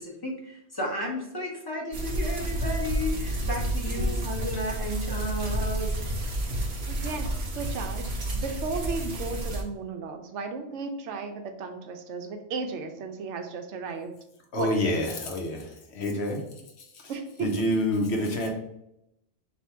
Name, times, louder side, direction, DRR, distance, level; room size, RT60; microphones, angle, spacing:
voice 1, 0.0-5.9, equal, 20° left, -2 dB, 0.8 m, -33 dB
sound 1, 1.9-9.6, right 1 dB, 60° right, 1.0 m, -30 dB
voice 2, 3.9-4.3 6.9-8.0 8.4-14.1 14.6-15.1 17.1-17.7, right 4 dB, 85° right, 6 dB, 0.9 m, -35 dB
voice 3, 14.5-16.4 17.4-18.5, left 1 dB, 65° left, 1 dB, 1.0 m, -27 dB
3.4 x 2.8 x 4.3 m, 0.83 s
omnidirectional pair, 1.2 m